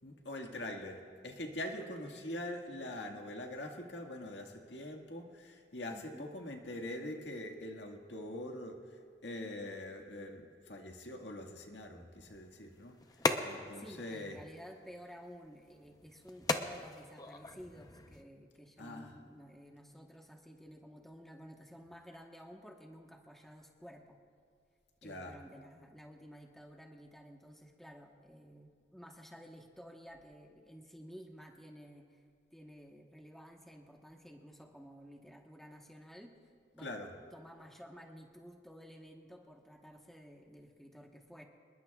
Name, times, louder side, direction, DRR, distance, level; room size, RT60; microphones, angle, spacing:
voice 1, 0.0-8.8 9.2-12.9 13.4-14.4 18.8-19.1 25.0-25.4 36.8-37.1, left 1 dB, 80° left, 2 dB, 1.8 m, -43 dB
voice 2, 1.8-2.3 5.9-6.3 13.7-24.2 25.0-32.2 32.5-36.4 36.7-37.0 37.3-41.4, equal, ahead, 1 dB, 1.1 m, -53 dB
sound 1, 12.2-18.2, left 3 dB, 20° left, 0.7 m, -39 dB
26.0 x 21.0 x 2.4 m, 2.2 s
head